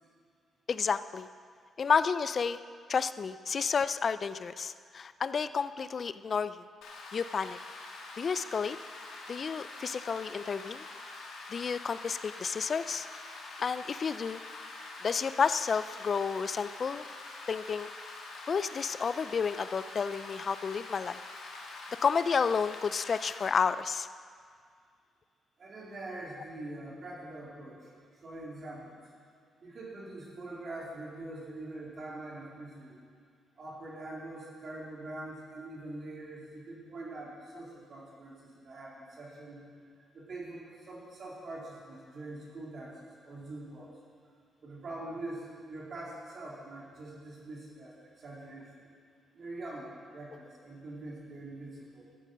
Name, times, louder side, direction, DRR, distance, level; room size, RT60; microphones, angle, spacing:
voice 1, 0.7-1.3 1.8-2.6 2.9-6.6 7.1-7.6 8.2-8.8 9.3-10.8 11.5-13.1 13.6-14.4 15.0-17.0 17.5-17.9 18.5-21.2 22.0-24.1, left 6 dB, 50° left, 14 dB, 0.3 m, -31 dB
Rain, 6.8-23.5, left 3 dB, 85° left, 1.9 m, -45 dB
voice 2, 25.6-27.9 28.2-29.0 29.6-33.0 33.6-39.6 40.1-43.9 44.6-48.9 49.3-52.1, right 2 dB, 55° right, -4 dB, 3.6 m, -44 dB
13.5 x 9.1 x 5.2 m, 2.1 s
cardioid pair, 75°, 0 cm